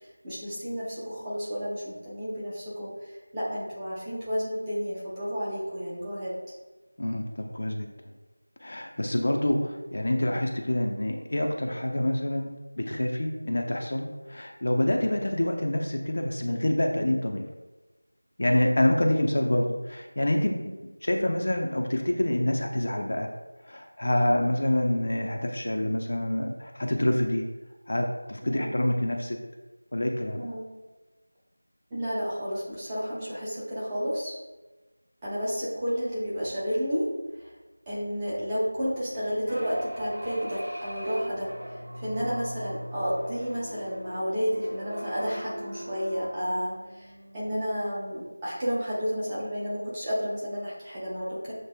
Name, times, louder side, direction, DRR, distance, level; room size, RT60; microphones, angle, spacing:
voice 1, 0.2-6.3 28.4-28.7 30.4-30.7 31.9-34.4 35.2-37.1 37.4-37.5 37.9-51.5, equal, 10° right, -10 dB, 0.7 m, -31 dB
voice 2, 7.0-7.9 8.6-17.5 18.4-20.7 21.0-23.3 23.6-27.4 27.9-29.4 29.9-30.4, left 1 dB, 45° left, 2 dB, 0.5 m, -27 dB
sound 1, 39.5-48.2, equal, 50° right, 1.0 m, -40 dB
7.4 x 2.6 x 2.2 m, 1.2 s
figure-of-eight pair, 175°, 0 cm